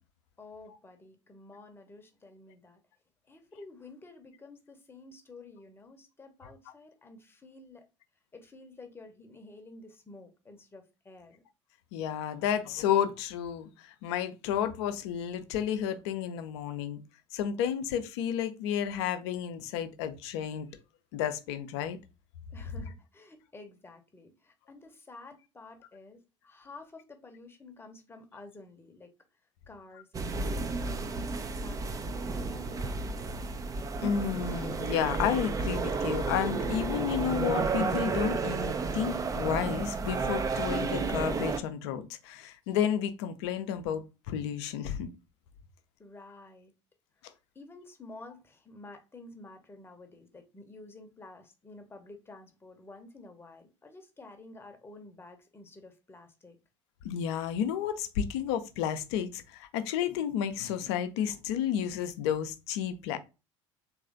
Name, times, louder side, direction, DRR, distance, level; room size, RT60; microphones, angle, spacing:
voice 1, 0.4-2.8 3.3-7.9 8.3-11.4 22.5-29.1 29.7-33.4 46.0-46.7 47.5-56.6, left 2 dB, 15° left, 0.9 m, -51 dB
voice 2, 11.9-17.0 17.3-20.7 21.1-22.0 34.0-45.1 57.0-63.2, left 9 dB, 60° left, 0.6 m, -31 dB
sound 1, 30.1-41.6, right 4 dB, 20° right, 0.5 m, -32 dB
3.2 x 2.6 x 3.8 m
figure-of-eight pair, 70°, 16 cm